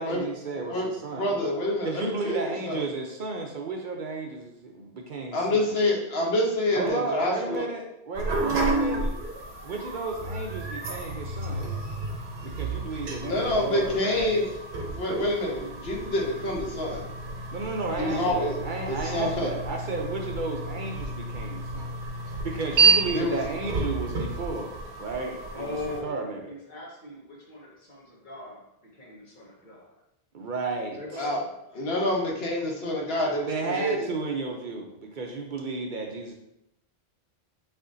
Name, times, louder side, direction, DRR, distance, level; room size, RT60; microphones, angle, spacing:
voice 1, 0.0-1.6 1.8-5.7 6.7-9.1 9.6-11.7 12.4-14.4 17.5-21.9 22.3-25.8 26.0-26.4 30.3-31.0 33.5-36.3, right 3 dB, 55° right, 1 dB, 0.7 m, -33 dB
voice 2, 1.1-2.8 5.3-7.6 13.2-14.4 14.9-17.1 18.0-18.5 18.9-19.5 23.1-23.4 31.2-31.4 31.7-34.1, left 1 dB, 70° left, -1 dB, 1.2 m, -27 dB
sound 1, 8.1-26.0, right 3 dB, 80° right, 1.0 m, -30 dB
voice 3, 25.5-29.9 30.9-31.9, left 2 dB, 50° left, -3 dB, 1.3 m, -40 dB
6.7 x 2.8 x 2.5 m, 0.84 s
omnidirectional pair, 1.1 m